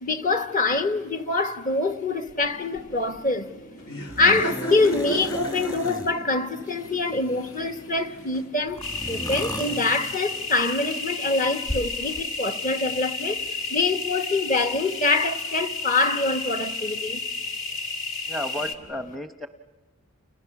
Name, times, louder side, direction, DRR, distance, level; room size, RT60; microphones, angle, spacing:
voice 1, 0.0-3.5 4.2-13.4 13.7-17.2, left 3 dB, 35° left, 1.3 m, -25 dB
sound 1, 2.3-2.5 2.8-3.2 4.1-6.1 6.6-8.0 8.7-10.7 11.3-12.2, equal, 15° left, 1.3 m, -37 dB
Laughter, 2.4-8.7, right 1 dB, 85° left, 3.1 m, -36 dB
sound 2, 8.8-18.7, left 3 dB, 60° left, 2.0 m, -32 dB
voice 2, 18.3-19.5, left 1 dB, ahead, 0.8 m, -32 dB
30.0 x 30.0 x 5.9 m
head